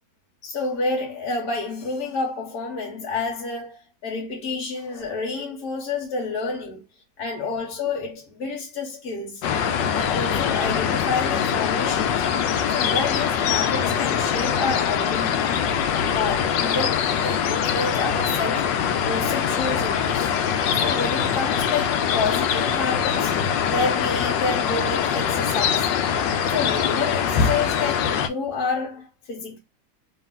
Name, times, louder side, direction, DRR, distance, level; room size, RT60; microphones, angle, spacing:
voice 1, 0.4-6.8 7.2-9.4 9.9-12.2 12.7-15.7 16.1-18.7 19.1-20.3 20.7-25.9 26.5-29.6, left 4 dB, 55° left, 1.6 m, -29 dB
sound 1, 9.4-28.3, left 8 dB, 70° left, 1.2 m, -23 dB
3.2 x 2.9 x 3.6 m
omnidirectional pair, 2.2 m